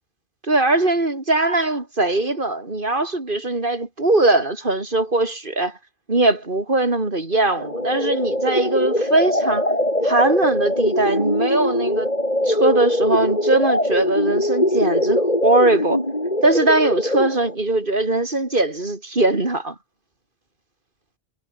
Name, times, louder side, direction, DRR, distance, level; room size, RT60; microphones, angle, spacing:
voice 1, 0.5-5.8 6.1-9.7 10.0-12.1 12.5-16.0 16.4-19.8, right 2 dB, 50° right, 3.9 m, -20 dB
sound 1, 7.6-17.5, left 1 dB, 40° left, 8.0 m, -22 dB
omnidirectional pair, 1.1 m